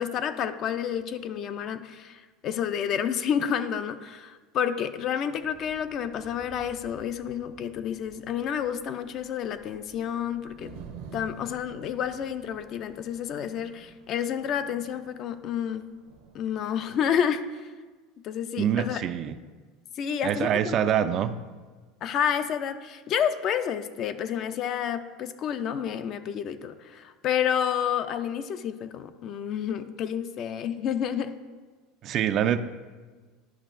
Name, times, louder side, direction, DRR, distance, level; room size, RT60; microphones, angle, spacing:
voice 1, 0.0-10.8 11.1-15.9 16.3-17.7 18.2-19.0 20.0-21.1 22.0-31.4, left 8 dB, 45° left, 10 dB, 0.4 m, -30 dB
sound 1, 5.4-17.1, right 6 dB, 85° right, 1.0 m, -50 dB
voice 2, 18.6-19.4 20.2-21.4 32.0-32.6, right 9 dB, 45° right, 11 dB, 0.3 m, -25 dB
11.0 x 5.4 x 2.5 m, 1.4 s
supercardioid pair, 120°, 0 cm